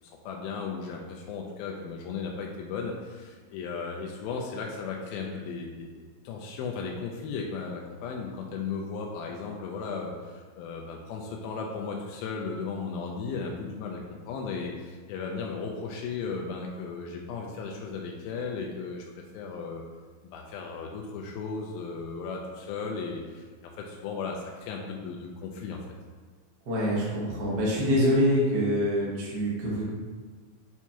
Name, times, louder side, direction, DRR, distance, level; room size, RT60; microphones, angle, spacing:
voice 1, 0.0-6.0 6.2-19.8 20.3-25.8, left 5 dB, 85° left, 0 dB, 2.3 m, -36 dB
voice 2, 26.7-29.8, equal, 85° right, -6 dB, 0.9 m, -25 dB
8.0 x 4.5 x 2.9 m, 1.5 s
omnidirectional pair, 4.4 m